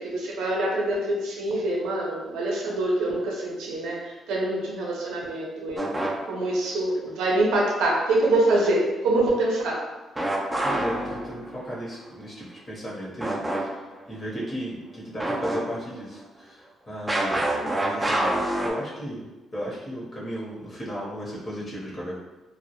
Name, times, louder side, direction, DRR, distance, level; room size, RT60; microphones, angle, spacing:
voice 1, 0.0-5.9 6.2-9.8, right 2 dB, 85° right, -2 dB, 0.5 m, -25 dB
sound 1, 5.8-6.5 10.2-11.7 13.2-13.6 14.0-14.1 15.2-16.0 17.1-18.7, right 1 dB, 10° right, 0.4 m, -26 dB
voice 2, 10.6-22.2, equal, 30° left, -6 dB, 0.8 m, -35 dB
2.2 x 2.0 x 2.8 m, 1.1 s
cardioid pair, 90°, 0 cm